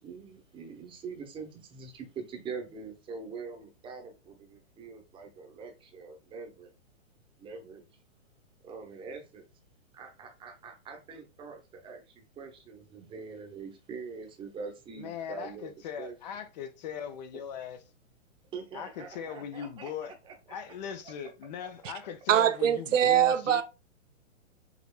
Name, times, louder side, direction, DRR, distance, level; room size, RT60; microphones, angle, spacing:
voice 1, 0.0-6.7 7.4-7.8 8.6-9.5 9.9-12.0 12.4-15.7 16.0-16.1 18.5-20.1, right 5 dB, 15° right, 0.8 m, -43 dB
voice 2, 15.0-17.8 18.7-20.1 20.5-23.6, left 8 dB, 35° left, 0.5 m, -39 dB
voice 3, 22.3-23.6, right 10 dB, 80° right, 0.6 m, -23 dB
5.6 x 2.7 x 2.3 m
hypercardioid pair, 135°, 38 cm